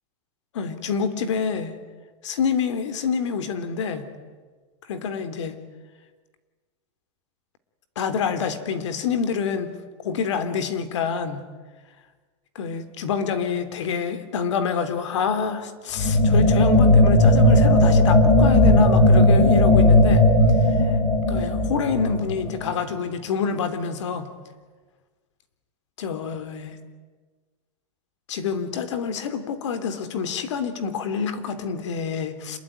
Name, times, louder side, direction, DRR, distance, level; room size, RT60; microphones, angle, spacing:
voice 1, 0.5-1.7 2.2-4.1 4.9-5.5 7.9-9.7 10.0-11.4 12.5-20.2 20.9-21.0 21.3-24.3 26.0-26.8 28.3-32.6, left 6 dB, 75° left, 10 dB, 3.3 m, -27 dB
sound 1, 16.0-22.7, left 1 dB, 15° left, 3.4 m, -16 dB
27.0 x 22.0 x 9.9 m, 1.4 s
supercardioid pair, 175°, 15 cm